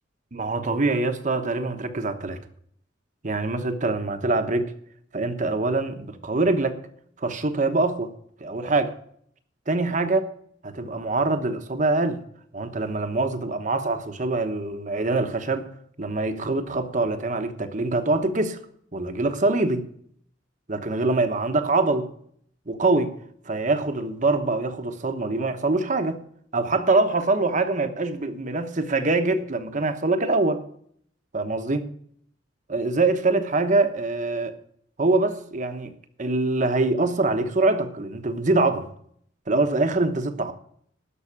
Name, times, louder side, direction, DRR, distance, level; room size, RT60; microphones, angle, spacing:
voice 1, 0.3-2.4 3.2-4.7 5.1-6.8 7.2-8.1 8.4-8.9 9.7-10.3 10.6-12.2 12.5-15.7 16.0-18.6 18.9-19.9 20.7-22.1 22.7-23.1 23.5-26.2 26.5-30.6 31.3-31.8 32.7-34.6 35.0-35.9 36.2-38.9 39.5-40.5, right 2 dB, 40° right, 1.0 m, -24 dB
12.5 x 5.7 x 8.6 m
head